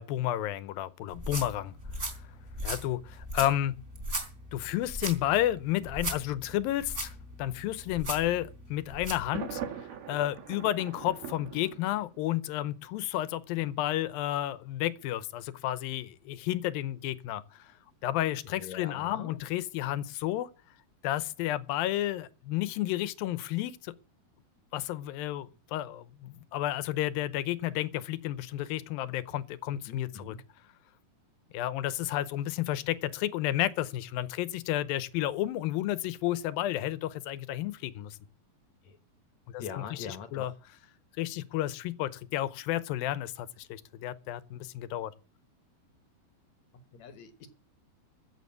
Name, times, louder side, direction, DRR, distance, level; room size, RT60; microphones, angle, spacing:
voice 1, 0.0-1.7 2.6-3.8 4.5-17.7 18.0-20.5 21.0-23.9 24.7-30.4 31.5-38.2 39.5-40.1 40.3-40.5 41.2-45.1, left 13 dB, 80° left, 2.5 m, -31 dB
sound 1, 1.1-9.3, right 1 dB, 20° right, 3.5 m, -38 dB
Thunder, 9.3-12.3, right 8 dB, 80° right, 3.6 m, -41 dB
voice 2, 18.5-19.4 29.9-30.4 38.8-39.0 39.6-40.6 46.7-47.5, left 7 dB, 60° left, 2.0 m, -43 dB
15.0 x 7.0 x 8.3 m
omnidirectional pair, 4.4 m